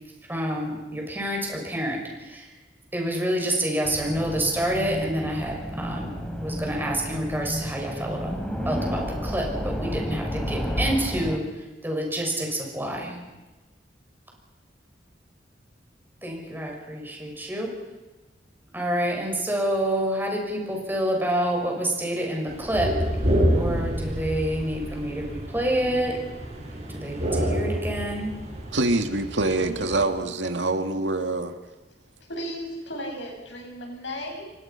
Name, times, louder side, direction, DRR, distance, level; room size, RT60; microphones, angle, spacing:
voice 1, 0.3-2.5 2.9-8.3 8.6-13.2 16.2-17.7 18.7-23.0 23.2-26.2 26.9-28.3, right 1 dB, 10° right, 0 dB, 6.5 m, -28 dB
sound 1, 3.8-11.4, equal, 5° left, 3.4 m, -31 dB
sound 2, 22.5-30.0, equal, 40° right, 7.8 m, -28 dB
voice 2, 28.7-31.6, right 2 dB, 90° right, 6 dB, 2.1 m, -25 dB
voice 3, 32.2-34.4, equal, 85° left, 1 dB, 7.8 m, -35 dB
29.0 x 24.0 x 5.9 m, 1.2 s
head